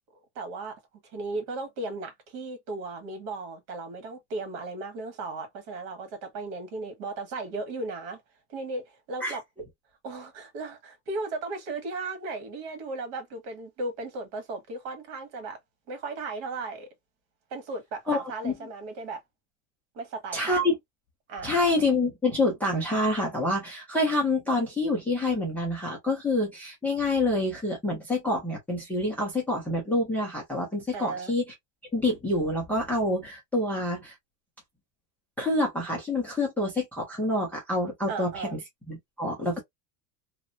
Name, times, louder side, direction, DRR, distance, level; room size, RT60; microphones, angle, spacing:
voice 1, 0.3-0.8 1.1-8.2 8.5-9.4 10.0-15.6 15.9-16.9 17.5-19.2 19.9-20.6 21.3-21.7 30.9-31.3 38.1-38.6, right 3 dB, 65° right, 1.6 m, -36 dB
voice 2, 18.1-18.5 20.3-20.8 21.4-31.4 31.9-34.1 35.4-38.6 38.9-39.6, left 2 dB, 5° left, 0.4 m, -27 dB
2.9 x 2.1 x 2.5 m
cardioid pair, 170°, 44 cm